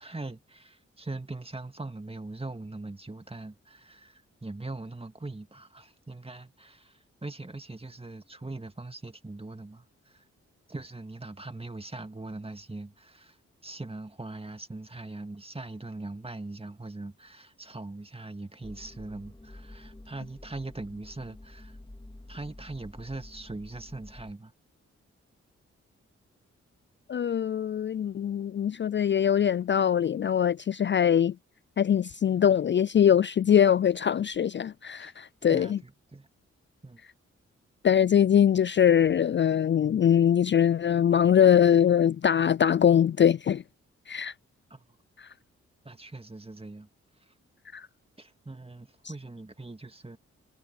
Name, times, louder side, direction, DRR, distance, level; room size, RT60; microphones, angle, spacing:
voice 1, 0.0-10.2 10.7-13.4 13.6-21.8 22.3-24.5 35.0-35.1 35.5-36.3 36.8-37.0 44.7-44.8 45.8-46.9 48.2-50.2, right 2 dB, 20° right, 2.0 m, -41 dB
sound 1, 18.6-24.3, left 1 dB, 15° left, 3.2 m, -48 dB
voice 2, 27.1-31.3 31.8-35.8 37.8-43.6 44.1-44.3 45.2-45.3 47.7-47.9, left 9 dB, 40° left, 0.4 m, -22 dB
supercardioid pair, 45°, 29 cm